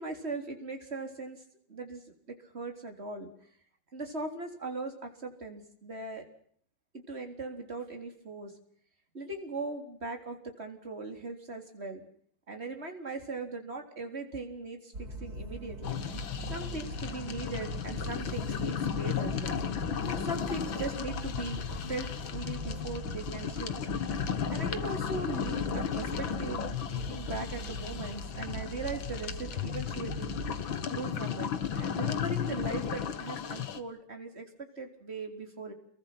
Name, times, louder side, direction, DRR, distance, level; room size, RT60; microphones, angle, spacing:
voice 1, 0.0-1.4 1.7-3.3 3.9-6.2 6.9-8.5 9.1-12.0 12.5-16.0 16.5-19.6 20.0-23.8 24.5-26.6 26.9-30.6 30.9-35.7, right 3 dB, 30° right, 3 dB, 4.2 m, -39 dB
sound 1, 14.9-30.6, right 1 dB, 45° right, 3.1 m, -41 dB
sound 2, 15.8-33.8, left 8 dB, 70° left, 2.2 m, -35 dB
29.5 x 22.5 x 6.0 m, 0.62 s
omnidirectional pair, 2.3 m